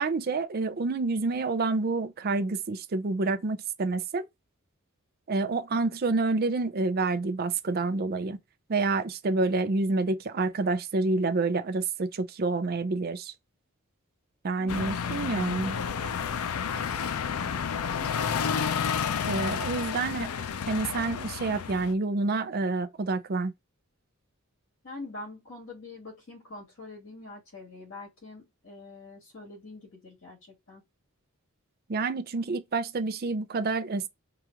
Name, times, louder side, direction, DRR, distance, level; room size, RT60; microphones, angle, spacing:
voice 1, 0.0-4.3 5.3-8.4 8.7-13.3 14.4-15.8 19.2-20.3 20.7-23.5 31.9-34.1, right 3 dB, 45° right, 0.5 m, -28 dB
sound 1, 14.7-21.9, left 7 dB, 85° left, 0.5 m, -31 dB
voice 2, 15.5-16.3 16.7-17.7 20.0-20.2 24.8-30.8, left 2 dB, 60° left, 2.8 m, -45 dB
4.8 x 2.4 x 2.9 m
head